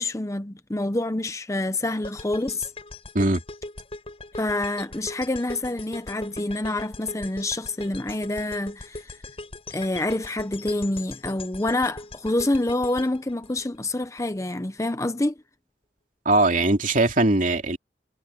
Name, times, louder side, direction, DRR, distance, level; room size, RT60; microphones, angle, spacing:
voice 1, 0.0-2.7 4.3-9.2 9.7-15.3, left 2 dB, 15° left, 0.7 m, -27 dB
sound 1, 2.0-14.2, left 2 dB, 35° left, 7.9 m, -40 dB
voice 2, 16.2-17.8, right 2 dB, 45° right, 2.7 m, -20 dB
head